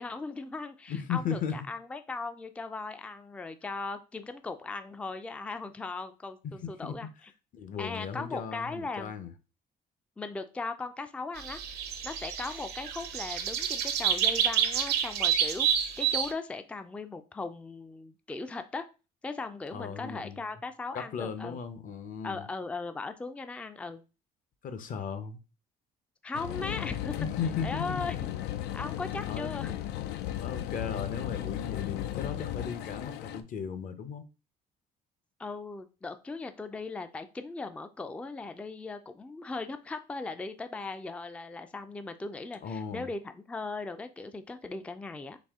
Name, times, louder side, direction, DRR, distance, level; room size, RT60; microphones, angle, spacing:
voice 1, 0.0-7.3 7.8-9.1 10.2-11.6 12.0-15.7 16.0-18.9 19.2-21.6 22.2-24.0 26.2-27.1 27.6-28.2 28.7-29.7 35.4-45.4, left 3 dB, 5° left, 0.3 m, -38 dB
voice 2, 0.9-1.6 6.4-7.0 7.5-9.3 19.7-20.4 20.9-22.5 24.6-25.4 27.1-28.2 29.3-29.6 30.4-34.2 42.6-43.1, left 6 dB, 50° left, 0.7 m, -36 dB
sound 1, 11.4-16.3, right 9 dB, 70° right, 0.7 m, -29 dB
sound 2, 26.3-33.4, left 12 dB, 85° left, 0.4 m, -35 dB
4.1 x 2.7 x 3.5 m
cardioid pair, 110°, 17 cm